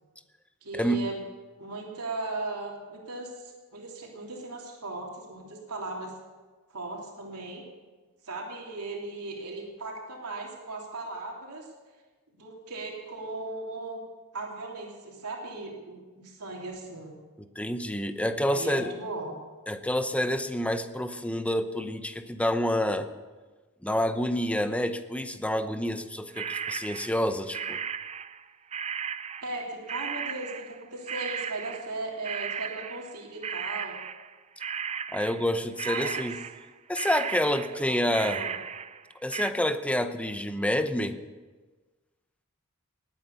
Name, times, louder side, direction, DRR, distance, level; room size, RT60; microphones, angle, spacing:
voice 1, 0.6-1.2 1.6-6.1 6.7-7.6 8.2-11.7 12.3-14.0 14.3-17.1 18.4-19.4 29.4-34.0 35.8-36.2 37.9-38.5, right 2 dB, 90° right, -1 dB, 3.0 m, -37 dB
voice 2, 17.4-18.9 19.7-23.1 23.8-27.8 35.1-36.4 36.9-38.4 39.2-41.2, left 1 dB, 5° left, 9 dB, 0.8 m, -28 dB
sound 1, 26.3-33.2 33.4-35.5 35.8-36.7 37.0-39.5, right 7 dB, 30° right, 0.5 m, -36 dB
19.5 x 9.3 x 6.9 m, 1.3 s
head